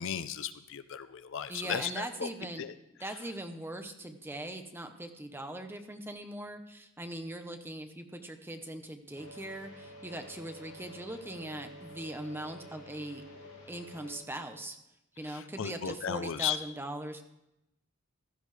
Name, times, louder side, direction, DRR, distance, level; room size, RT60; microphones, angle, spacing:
voice 1, 0.0-2.3 2.6-2.7 3.0-3.2 15.2-16.6, left 8 dB, 65° left, 13 dB, 0.6 m, -35 dB
voice 2, 1.5-2.7 3.0-13.2 13.7-14.8 15.2-17.2, right 1 dB, 10° right, 6 dB, 0.9 m, -41 dB
sound 1, 9.1-14.2, equal, 35° left, 4.5 m, -50 dB
16.0 x 12.0 x 3.3 m, 0.87 s
head